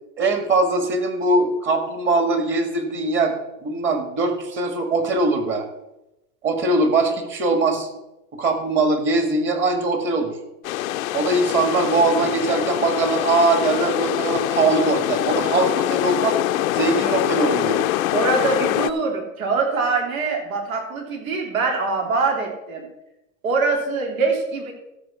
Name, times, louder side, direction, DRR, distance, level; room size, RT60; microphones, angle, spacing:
voice 1, 0.2-3.3 3.6-5.7 6.4-7.9 8.4-10.3 11.1-16.4 16.7-17.9, right 3 dB, 30° right, 6 dB, 2.0 m, -21 dB
sound 1, 10.6-18.9, left 14 dB, 80° left, 0.7 m, -24 dB
voice 2, 18.1-22.9 23.4-24.7, right 4 dB, 80° right, 2 dB, 3.3 m, -23 dB
13.5 x 5.3 x 6.8 m, 0.93 s
supercardioid pair, 135°, 40 cm